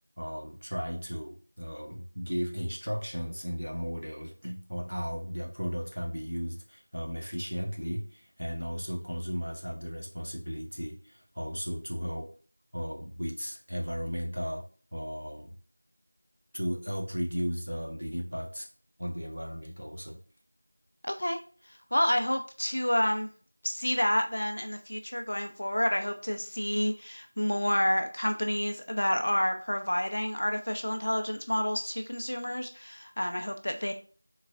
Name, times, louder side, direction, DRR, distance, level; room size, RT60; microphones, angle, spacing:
voice 1, 0.2-12.3 12.7-14.6 14.9-15.6 16.5-18.7 19.0-20.2, equal, 80° right, 2 dB, 1.3 m, -35 dB
voice 2, 21.0-21.4 21.9-23.3 23.6-33.9, equal, 45° left, 5 dB, 0.6 m, -29 dB
5.0 x 3.9 x 2.5 m, 0.40 s
figure-of-eight pair, 175°, 0 cm